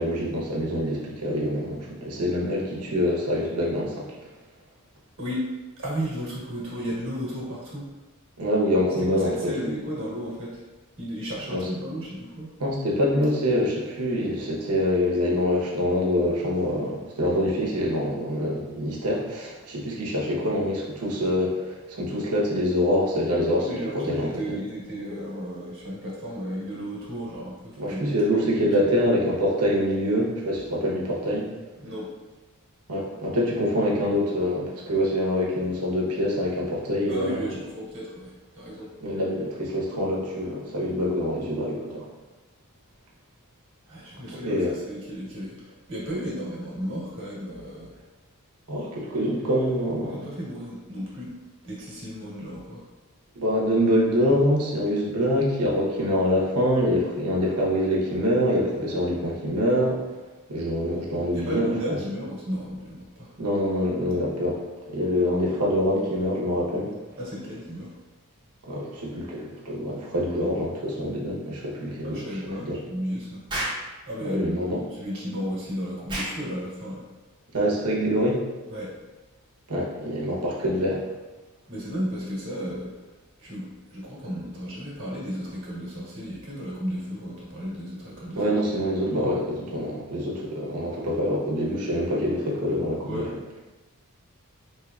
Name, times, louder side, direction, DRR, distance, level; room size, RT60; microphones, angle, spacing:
voice 1, 0.0-4.1 8.4-9.6 11.5-11.7 12.6-23.7 23.9-24.5 27.8-31.5 32.9-37.5 39.0-42.1 44.3-44.7 48.7-50.3 53.3-60.0 60.5-61.7 63.4-64.6 64.9-66.9 68.6-72.2 72.6-72.8 74.2-74.8 77.5-78.4 79.7-81.0 88.3-93.3, equal, 90° right, -3 dB, 0.9 m, -25 dB
voice 2, 5.8-7.8 9.1-10.6 11.0-12.5 23.6-28.4 31.8-32.1 37.1-38.9 43.9-48.0 50.1-51.3 51.6-52.8 61.3-63.4 67.2-67.9 72.0-73.4 74.0-77.0 78.7-78.9 81.7-83.1 83.4-88.4 93.0-93.3, equal, 60° right, -5 dB, 1.3 m, -34 dB
Explosion, 73.5-73.9 76.1-76.4, right 1 dB, 20° right, 0.9 m, -29 dB
4.4 x 3.0 x 2.3 m, 1.2 s
head